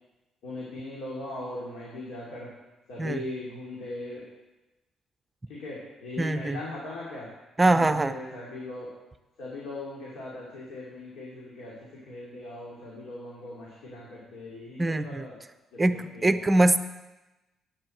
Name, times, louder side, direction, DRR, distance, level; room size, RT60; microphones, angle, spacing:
voice 1, 0.4-2.5 2.9-4.2 5.5-7.3 7.7-8.9 9.4-11.7 12.1-15.4 15.7-16.4, left 2 dB, 85° left, -5 dB, 2.7 m, -39 dB
voice 2, 6.2-6.6 7.6-8.1 14.8-15.2 15.8-16.8, right 2 dB, 20° right, 11 dB, 0.6 m, -23 dB
8.8 x 7.5 x 7.7 m, 1.1 s
cardioid pair, 90°, 0 cm